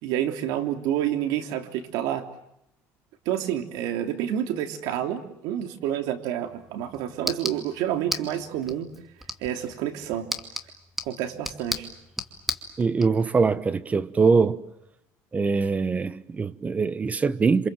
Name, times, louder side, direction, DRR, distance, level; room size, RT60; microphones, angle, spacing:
voice 1, 0.0-2.2 3.2-8.9 9.4-10.3 11.0-11.9, right 11 dB, 75° right, 3.1 m, -29 dB
sound 1, 6.4-13.1, equal, 5° right, 2.4 m, -36 dB
voice 2, 12.8-14.6 15.3-17.7, right 4 dB, 20° right, 1.1 m, -23 dB
28.0 x 27.5 x 7.7 m
cardioid pair, 130°, 7 cm